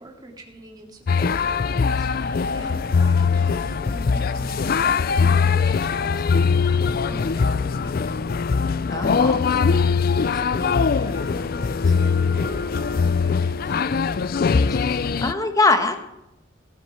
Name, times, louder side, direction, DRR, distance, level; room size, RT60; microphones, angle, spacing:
voice 1, 0.0-8.4 9.0-9.8 10.2-14.1, right 1 dB, 20° right, 1 dB, 2.4 m, -43 dB
sound 1, 1.1-15.3, left 5 dB, 50° left, 0.4 m, -21 dB
voice 2, 8.9-9.5 14.7-16.0, left 3 dB, 20° left, 7 dB, 1.3 m, -22 dB
16.5 x 12.0 x 4.4 m, 0.87 s
head